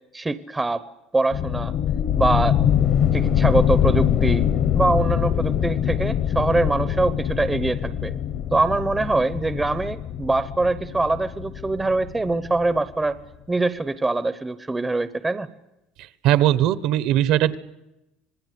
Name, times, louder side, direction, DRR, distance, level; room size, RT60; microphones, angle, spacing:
voice 1, 0.1-0.8 1.1-1.7 2.2-2.6 3.1-4.5 4.8-8.1 8.5-13.2 13.5-15.5, right 2 dB, 10° right, 13 dB, 0.8 m, -23 dB
sound 1, 1.3-12.8, left 10 dB, 45° left, 1.2 m, -23 dB
voice 2, 16.2-17.6, right 12 dB, 55° right, 16 dB, 1.1 m, -19 dB
26.5 x 20.5 x 8.4 m, 0.93 s
cardioid pair, 165°, 0 cm